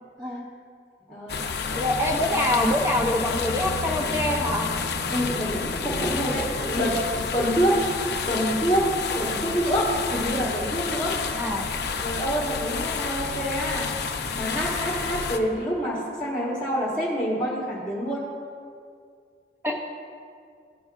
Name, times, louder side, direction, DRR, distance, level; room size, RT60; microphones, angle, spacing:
voice 1, 1.1-1.5 4.9-6.9 7.3-7.8 8.3-8.8 9.1-11.1 12.0-13.9 14.3-18.2, equal, 5° left, -6 dB, 1.1 m, -27 dB
sound 1, 1.3-15.4, left 5 dB, 65° left, 0.5 m, -30 dB
voice 2, 1.8-4.7 11.4-11.7 19.6-19.8, left 1 dB, 15° right, -1 dB, 0.5 m, -25 dB
13.0 x 5.3 x 2.3 m, 2.2 s
head